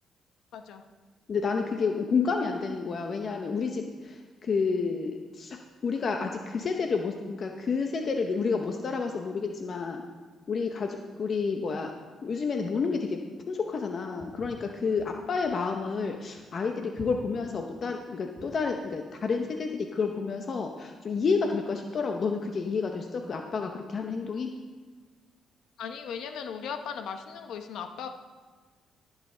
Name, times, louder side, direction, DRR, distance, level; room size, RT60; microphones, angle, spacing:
voice 1, 0.5-0.8 25.8-28.1, left 7 dB, 80° left, 6 dB, 1.0 m, -37 dB
voice 2, 1.3-5.6 5.8-10.0 10.5-11.9 12.2-13.2 13.5-24.5, left 5 dB, 50° left, 4 dB, 0.8 m, -30 dB
Walk footsteps, 14.2-18.7, right 2 dB, 35° right, 2.0 m, -49 dB
14.0 x 7.5 x 3.9 m, 1.5 s
cardioid pair, 90°, 0 cm